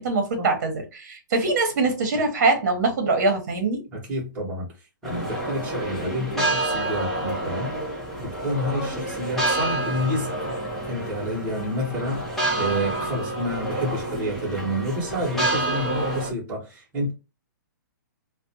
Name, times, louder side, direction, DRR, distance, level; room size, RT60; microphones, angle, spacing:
voice 1, 0.0-3.8, right 3 dB, 50° right, 0.9 m, -23 dB
voice 2, 3.9-4.7 5.0-7.7 8.2-10.6 10.9-17.1, equal, 15° right, 1.0 m, -29 dB
sound 1, 5.0-16.3, right 1 dB, 5° left, 0.5 m, -28 dB
2.5 x 2.1 x 2.7 m
hypercardioid pair, 165°, 11 cm